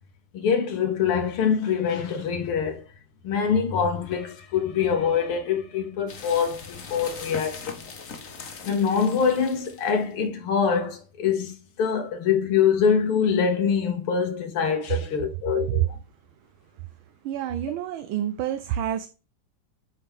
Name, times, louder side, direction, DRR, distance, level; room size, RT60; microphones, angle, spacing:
voice 1, 0.3-2.8 3.2-7.8 8.6-11.5 11.8-15.9, left 6 dB, 80° left, 2.0 m, -24 dB
sound 1, 6.1-10.1, left 4 dB, 45° left, 1.3 m, -40 dB
voice 2, 17.2-19.1, right 11 dB, 75° right, 1.3 m, -27 dB
8.6 x 4.7 x 3.5 m
omnidirectional pair, 2.4 m